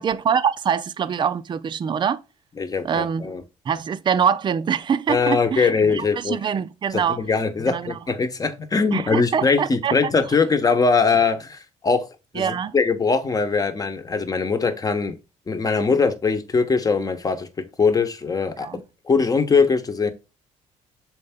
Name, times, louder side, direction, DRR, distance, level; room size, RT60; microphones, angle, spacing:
voice 1, 0.0-2.2 2.8-3.3 3.7-7.2 7.7-8.0 8.9-10.0 12.4-12.7 18.6-18.8, right 7 dB, 35° right, 0.5 m, -24 dB
voice 2, 2.6-3.4 5.1-6.4 6.9-12.1 12.3-15.2 15.5-18.8 19.1-20.1, left 4 dB, 25° left, 1.0 m, -21 dB
6.5 x 4.4 x 3.6 m
cardioid pair, 95°, 13 cm